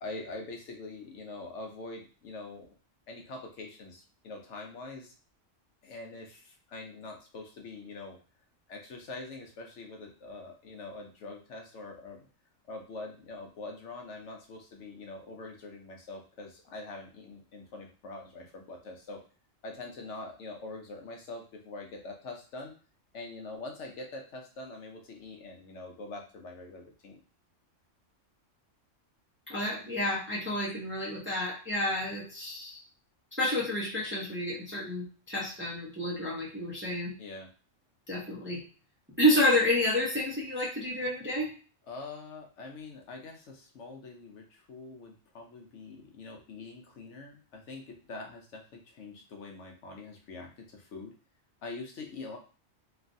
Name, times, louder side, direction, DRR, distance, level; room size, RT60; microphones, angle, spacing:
voice 1, 0.0-2.7 3.1-5.1 5.8-8.2 8.7-12.3 12.7-19.2 19.6-22.7 23.1-27.2 37.2-37.5 41.9-51.1 51.6-52.4, left 3 dB, 70° left, 2 dB, 0.9 m, -44 dB
voice 2, 29.5-32.8 33.4-37.1 38.1-38.6 39.2-41.5, left 1 dB, 15° right, -5 dB, 0.5 m, -29 dB
3.2 x 2.3 x 2.5 m, 0.37 s
omnidirectional pair, 1.3 m